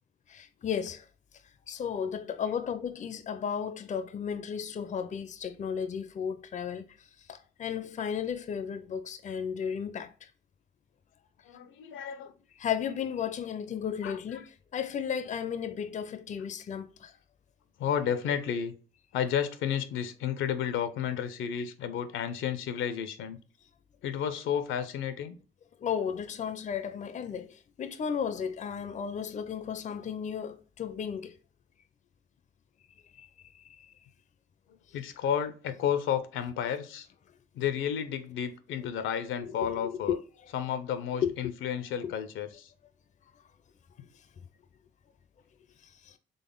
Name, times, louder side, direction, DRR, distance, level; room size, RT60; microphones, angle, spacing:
voice 1, 0.3-1.0 1.7-6.9 7.3-10.1 12.6-14.5 14.7-17.1 25.8-31.3 33.2-33.3 39.4-40.2 41.2-41.3 42.0-42.1 46.0-46.2, left 7 dB, 40° left, 0.5 m, -34 dB
voice 2, 11.4-12.3 14.0-14.4 17.8-18.7 19.1-23.4 24.0-25.4 34.9-37.1 37.5-40.2 40.5-42.7, left 8 dB, 80° left, 0.6 m, -32 dB
4.0 x 3.4 x 3.7 m
cardioid pair, 90°, 20 cm